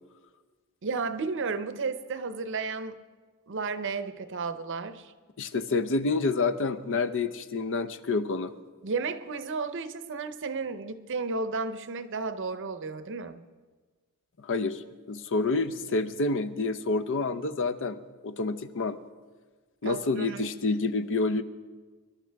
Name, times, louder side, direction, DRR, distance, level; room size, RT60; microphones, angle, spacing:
voice 1, 0.8-3.0 3.5-5.1 8.8-13.4 19.8-20.5, right 4 dB, 55° right, 11 dB, 0.7 m, -33 dB
voice 2, 5.4-8.5 14.4-19.0 19.8-21.4, left 3 dB, 60° left, 12 dB, 0.6 m, -28 dB
24.0 x 12.0 x 3.5 m, 1.4 s
head